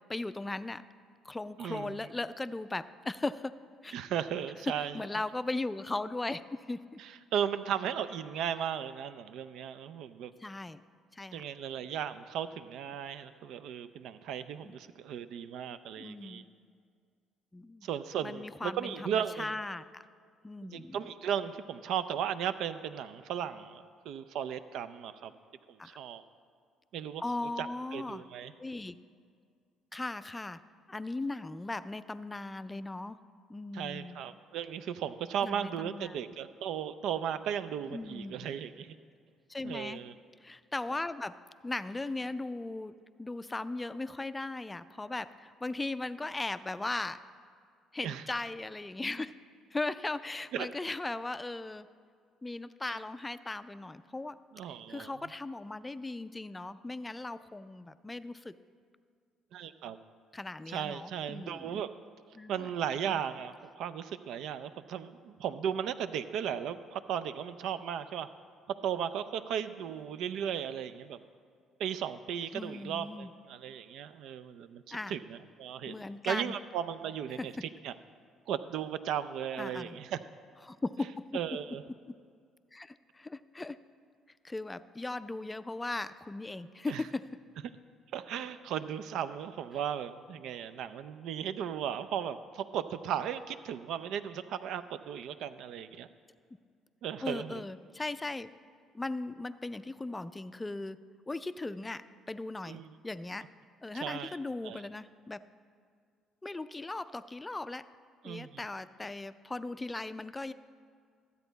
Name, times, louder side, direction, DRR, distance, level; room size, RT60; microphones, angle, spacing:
voice 1, 0.1-0.8 1.2-3.6 3.8-4.0 4.7-7.0 10.4-10.8 11.1-11.4 14.6-14.7 16.0-16.5 17.5-17.9 18.2-20.0 20.4-21.0 25.8-26.0 27.2-28.2 28.6-29.0 29.9-30.6 30.9-33.2 33.5-34.2 35.4-36.2 37.9-38.3 39.5-40.0 40.4-41.4 41.6-47.2 47.9-49.3 49.7-51.9 52.4-54.4 54.7-58.6 60.3-61.8 62.3-62.7 63.0-63.2 72.5-73.3 74.9-75.2 75.9-76.5 77.4-77.5 79.5-80.0 80.6-81.3 82.7-83.8 84.4-87.3 97.2-98.5 98.9-101.0 101.3-103.5 103.8-105.4 106.4-107.8 108.2-110.5, left 2 dB, 20° left, 13 dB, 0.4 m, -38 dB
voice 2, 1.6-2.0 3.9-5.0 7.0-10.3 11.3-16.4 17.8-19.5 20.6-25.3 25.7-26.2 26.9-27.2 27.6-28.5 33.7-39.0 39.6-40.1 48.0-48.2 50.5-50.7 52.9-53.0 54.5-55.1 59.5-60.0 60.7-61.9 62.5-68.3 68.8-71.2 71.8-77.9 78.5-80.2 81.3-81.8 86.9-87.0 88.1-96.1 97.0-97.6 102.7-102.9 103.9-104.4 104.6-104.8 108.2-108.7, right 9 dB, 65° right, 12 dB, 0.4 m, -36 dB
13.0 x 8.1 x 4.0 m, 2.1 s
hypercardioid pair, 55°, 0 cm